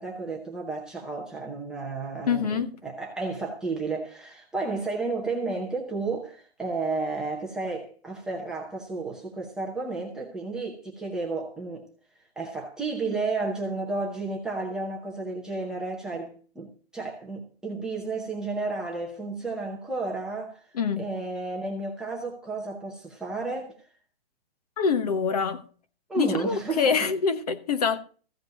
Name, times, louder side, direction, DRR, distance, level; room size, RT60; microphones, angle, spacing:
voice 1, 0.0-11.9 12.4-20.6 21.0-23.8 26.1-27.1, right 3 dB, ahead, 0.8 m, -32 dB
voice 2, 2.3-2.8 20.7-21.1 24.8-25.6 26.2-28.0, left 6 dB, 35° left, 1.1 m, -25 dB
15.0 x 5.2 x 7.7 m
hypercardioid pair, 170°, 32 cm